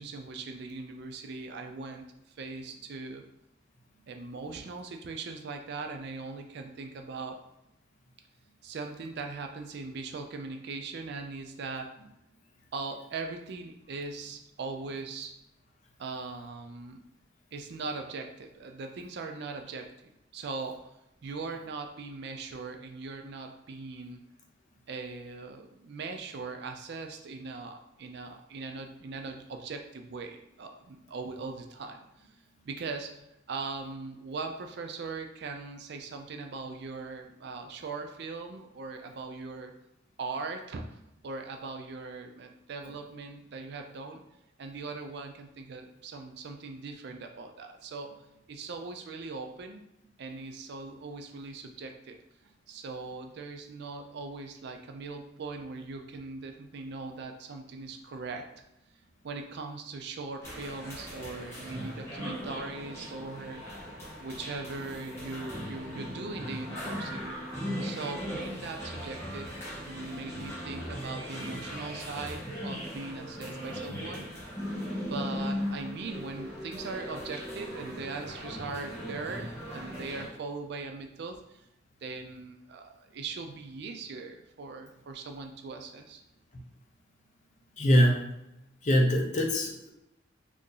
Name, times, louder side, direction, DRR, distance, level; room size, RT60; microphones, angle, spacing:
voice 1, 0.0-3.2 4.1-7.4 8.6-11.9 12.7-15.3 16.0-17.0 17.5-19.9 20.3-20.9 21.2-24.2 24.9-32.3 32.7-39.7 40.2-40.8 41.2-44.2 44.6-49.8 50.2-52.2 52.7-58.5 59.2-63.6 64.2-67.4 67.8-74.3 75.1-81.7 82.0-86.2, right 3 dB, 60° right, 4 dB, 0.4 m, -40 dB
sound 1, 60.4-80.3, equal, 15° left, 1.0 m, -38 dB
voice 2, 87.8-88.2 88.8-89.9, equal, 40° left, 1 dB, 0.5 m, -23 dB
2.8 x 2.5 x 3.7 m, 0.87 s
head